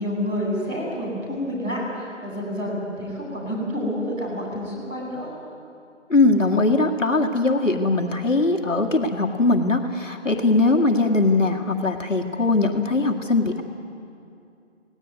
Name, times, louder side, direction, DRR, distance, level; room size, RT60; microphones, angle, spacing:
voice 1, 0.0-5.3, equal, 10° right, -10 dB, 5.6 m, -28 dB
voice 2, 6.1-13.6, left 2 dB, 80° left, 2 dB, 2.1 m, -20 dB
19.0 x 18.0 x 9.5 m, 2.6 s
figure-of-eight pair, 160°, 38 cm